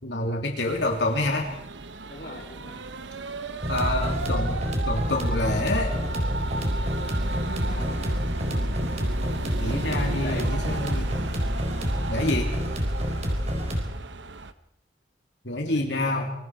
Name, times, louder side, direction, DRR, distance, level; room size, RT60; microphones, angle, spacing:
voice 1, 0.0-1.5 3.7-4.6 4.9-5.9 9.6-11.2 12.1-12.5 15.4-16.3, left 2 dB, 70° left, 1 dB, 3.0 m, -27 dB
sound 1, 0.6-14.5, right 3 dB, 75° right, 1.1 m, -35 dB
voice 2, 2.1-2.8 7.6-8.1 10.2-10.5 15.6-16.3, left 2 dB, 55° left, 2 dB, 3.3 m, -40 dB
sound 2, 3.6-13.8, equal, 35° right, 4.3 m, -27 dB
27.5 x 22.5 x 4.8 m, 0.78 s
head